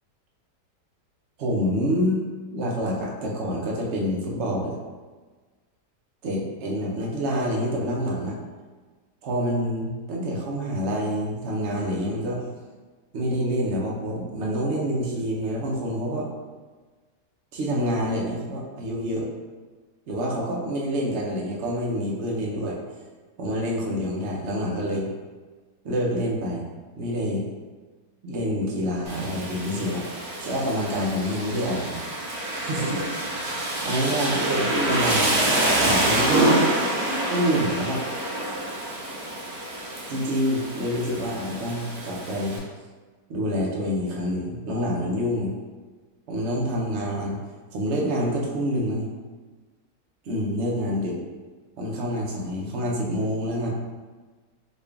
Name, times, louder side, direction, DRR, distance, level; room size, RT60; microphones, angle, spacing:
voice 1, 1.4-2.3 2.5-4.8 6.2-8.4 9.2-12.4 13.1-16.3 17.5-19.3 20.1-22.8 23.4-25.1 25.8-26.6 27.0-27.4 28.2-30.0 30.4-32.0 32.6-33.0 33.8-35.3 35.7-36.7 37.3-38.0 40.1-42.6 43.3-45.5 46.3-47.4 47.7-49.1 50.2-51.2 51.8-53.7, equal, 55° right, -3 dB, 0.8 m, -27 dB
Rain, 29.1-42.6, right 1 dB, 75° right, 1.5 m, -27 dB
3.8 x 2.3 x 3.4 m, 1.4 s
omnidirectional pair, 1.8 m